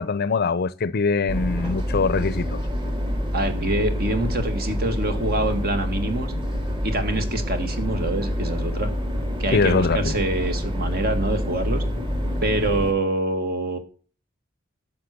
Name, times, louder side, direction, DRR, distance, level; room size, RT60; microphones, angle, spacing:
voice 1, 0.0-2.6 9.5-10.1, left 4 dB, 50° left, 0.6 m, -23 dB
sound 1, 1.3-12.9, equal, 25° right, 2.2 m, -27 dB
voice 2, 3.3-6.3 6.8-8.9 9.4-11.8 12.4-13.8, right 2 dB, 50° right, 2.2 m, -25 dB
12.0 x 7.5 x 6.8 m
head